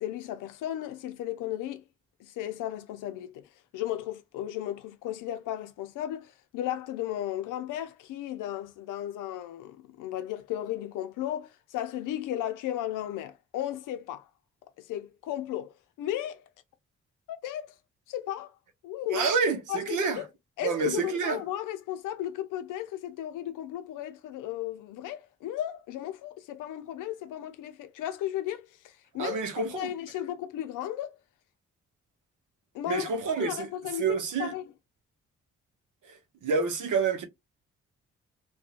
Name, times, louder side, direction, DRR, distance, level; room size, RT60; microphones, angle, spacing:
voice 1, 0.0-1.8 2.2-3.5 3.7-14.3 14.8-16.4 17.3-17.7 18.1-18.5 18.8-19.3 19.7-20.3 20.6-29.4 29.7-31.2 32.7-34.7, left 12 dB, 75° left, 0.6 m, -35 dB
voice 2, 19.1-20.2 20.6-21.4 29.2-29.9 32.9-33.7 34.0-34.5 36.1-37.2, right 5 dB, 70° right, 0.8 m, -28 dB
2.8 x 2.3 x 2.4 m
hypercardioid pair, 45°, 32 cm